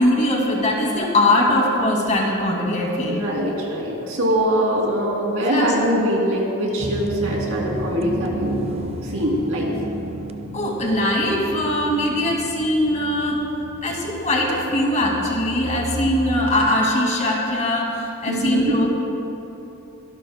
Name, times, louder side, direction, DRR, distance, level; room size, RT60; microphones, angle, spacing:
voice 1, 0.0-3.3 5.5-5.7 10.5-13.4 13.8-17.9 18.2-18.9, left 1 dB, 35° left, -1 dB, 2.2 m, -21 dB
voice 2, 3.0-9.7 18.3-18.6, equal, 70° right, -2 dB, 2.8 m, -23 dB
sound 1, 6.8-16.7, right 2 dB, 30° right, 0.4 m, -33 dB
25.0 x 12.0 x 2.2 m, 3.0 s
head